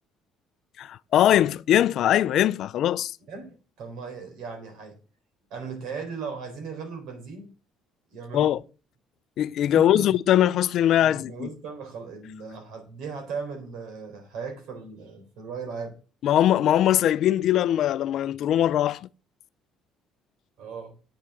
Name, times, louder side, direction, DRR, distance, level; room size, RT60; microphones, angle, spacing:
voice 1, 0.8-3.2 8.3-8.6 9.4-11.5 16.2-19.1, left 11 dB, 55° left, 0.4 m, -21 dB
voice 2, 3.3-5.0 5.5-7.5 8.1-8.5 9.7-10.1 11.0-15.9 20.6-20.9, right 5 dB, 70° right, 4.0 m, -37 dB
8.6 x 6.2 x 7.9 m
cardioid pair, 150°, 0 cm